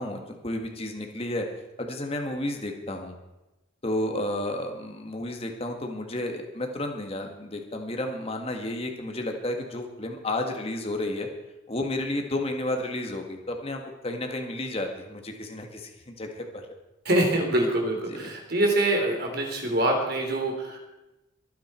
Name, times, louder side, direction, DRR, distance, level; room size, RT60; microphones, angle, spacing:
voice 1, 0.0-1.5 1.8-3.1 3.8-11.3 11.7-16.7 18.1-18.3, left 1 dB, 30° left, 3 dB, 1.8 m, -32 dB
voice 2, 17.1-20.8, right 1 dB, 50° right, 2 dB, 3.5 m, -25 dB
23.0 x 9.5 x 4.4 m, 0.99 s
head